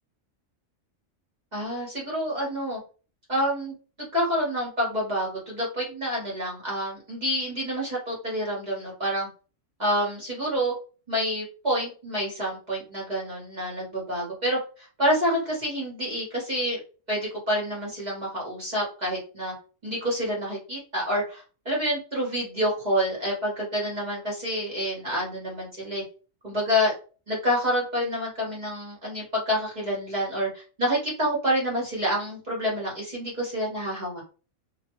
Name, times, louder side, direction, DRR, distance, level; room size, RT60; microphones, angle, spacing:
voice 1, 1.5-2.8 3.3-9.3 9.8-10.7 11.1-16.8 17.1-19.5 19.8-26.0 26.4-26.9 27.3-34.2, equal, 35° right, -4 dB, 1.0 m, -28 dB
2.4 x 2.2 x 2.9 m, 0.37 s
omnidirectional pair, 1.3 m